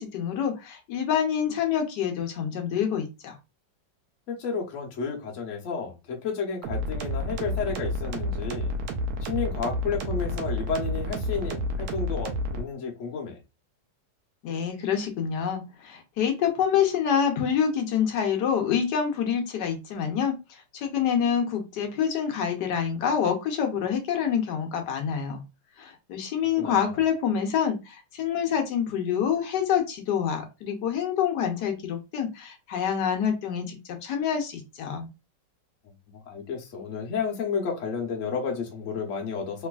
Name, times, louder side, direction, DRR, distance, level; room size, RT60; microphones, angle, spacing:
voice 1, 0.0-3.4 14.4-20.4 20.7-25.4 25.8-35.1, left 8 dB, 70° left, 1.3 m, -27 dB
voice 2, 4.3-8.7 9.2-13.4 26.6-27.0 36.1-39.7, left 5 dB, 55° left, 1.1 m, -31 dB
sound 1, 6.6-12.6, left 1 dB, 70° right, 1.2 m, -30 dB
3.2 x 3.0 x 2.3 m
omnidirectional pair, 2.0 m